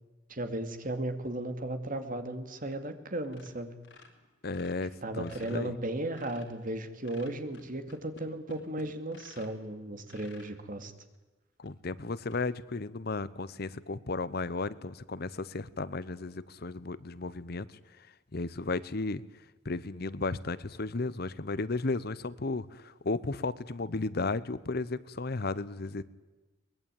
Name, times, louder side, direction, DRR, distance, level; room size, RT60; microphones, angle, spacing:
voice 1, 0.3-3.7 5.0-10.9, right 1 dB, 50° right, 8 dB, 2.5 m, -35 dB
sound 1, 2.7-3.0 3.2-3.5 3.8-6.6 7.0-9.7 10.0-10.5 11.1-11.2 11.6-11.7 12.2-12.4, left 2 dB, 75° left, 4.3 m, -53 dB
voice 2, 4.4-5.7 11.6-17.6 18.3-19.2 19.6-26.0, left 3 dB, 60° left, 17 dB, 0.9 m, -34 dB
23.0 x 21.0 x 9.2 m, 1.1 s
head